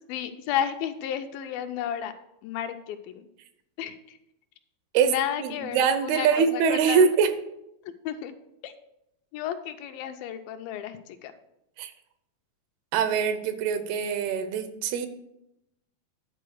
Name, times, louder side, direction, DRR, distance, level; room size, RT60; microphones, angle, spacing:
voice 1, 0.1-2.1 2.4-3.3 3.8-4.0 5.1-7.0 7.9-8.3 8.6-8.7 9.3-11.3, left 10 dB, 80° left, 8 dB, 2.2 m, -32 dB
voice 2, 4.9-7.3 11.8-11.9 12.9-15.1, right 6 dB, 90° right, 10 dB, 2.8 m, -23 dB
10.5 x 4.2 x 6.2 m, 0.84 s
omnidirectional pair, 4.4 m